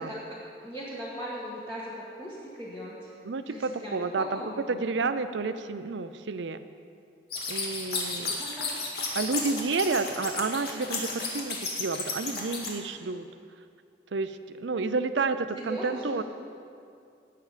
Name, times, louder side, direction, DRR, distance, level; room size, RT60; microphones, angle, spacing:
voice 1, 0.0-3.1 3.5-4.9 8.4-8.7 15.5-16.2, equal, 15° left, -8 dB, 1.5 m, -39 dB
voice 2, 3.2-4.4 4.7-6.6 7.5-8.4 9.1-13.2 14.1-16.2, right 4 dB, 85° right, 11 dB, 0.5 m, -30 dB
sound 1, 7.3-12.7, left 4 dB, 60° left, 1.9 m, -33 dB
18.0 x 6.8 x 5.0 m, 2.4 s
head